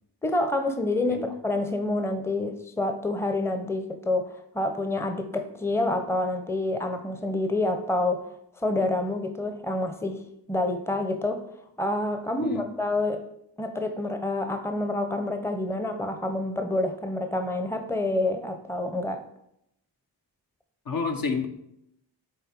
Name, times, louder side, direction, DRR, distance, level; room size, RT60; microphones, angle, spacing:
voice 1, 0.2-8.3 8.6-10.2 10.5-11.4 11.8-13.2 13.6-19.2, left 2 dB, 5° left, 7 dB, 0.7 m, -28 dB
voice 2, 20.9-21.5, left 5 dB, 55° left, 4 dB, 1.0 m, -29 dB
7.0 x 4.1 x 4.4 m, 0.79 s
cardioid pair, 40°, 43 cm